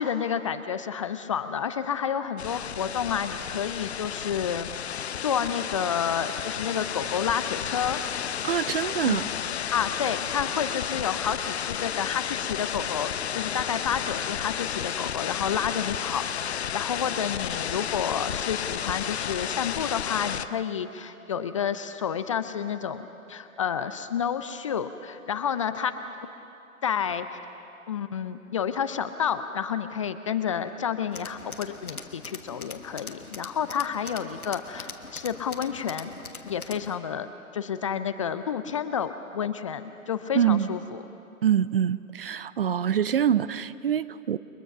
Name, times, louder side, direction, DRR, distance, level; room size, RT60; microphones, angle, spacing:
voice 1, 0.0-4.7 5.2-8.0 8.7-9.2 9.7-25.9 26.8-27.3 27.9-36.1 36.4-37.3 37.5-41.0, left 8 dB, 25° left, 11 dB, 0.5 m, -30 dB
sound 1, 2.4-20.5, left 9 dB, 50° left, 0.8 m, -32 dB
voice 2, 8.4-9.3 40.3-40.7 41.4-44.4, right 9 dB, 45° right, 16 dB, 0.6 m, -25 dB
Tools, 31.1-37.0, left 4 dB, 85° left, 1.6 m, -42 dB
30.0 x 22.5 x 6.0 m, 2.8 s
figure-of-eight pair, 125°, 43 cm